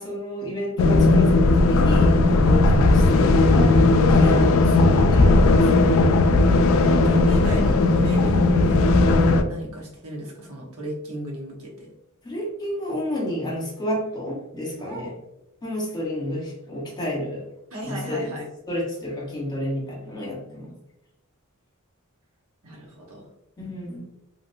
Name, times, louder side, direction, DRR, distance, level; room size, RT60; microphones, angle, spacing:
voice 1, 0.0-3.9 4.1-6.0 12.2-15.1 15.6-17.5 17.8-18.3 18.7-20.7 23.6-24.0, left 1 dB, 20° left, -4 dB, 1.1 m, -30 dB
sound 1, 0.8-9.4, left 2 dB, 70° left, 0.3 m, -17 dB
voice 2, 4.1-4.6 6.4-8.8 9.5-11.9 14.8-15.1 17.7-18.4 22.6-23.3, right 1 dB, 85° right, -2 dB, 1.0 m, -36 dB
3.0 x 2.8 x 2.6 m, 0.90 s
head